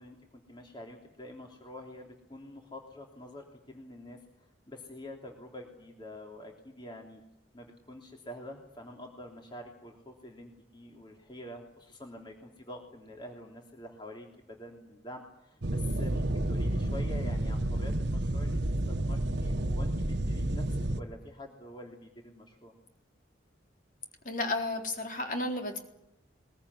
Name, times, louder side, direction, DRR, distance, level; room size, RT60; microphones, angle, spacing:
voice 1, 0.0-7.2 7.5-22.7, left 1 dB, 25° left, 2 dB, 3.2 m, -47 dB
sound 1, 15.6-21.0, right 1 dB, 60° right, 1.3 m, -30 dB
voice 2, 24.2-25.8, left 2 dB, 45° left, 3 dB, 3.9 m, -32 dB
22.5 x 22.0 x 9.8 m, 0.82 s
head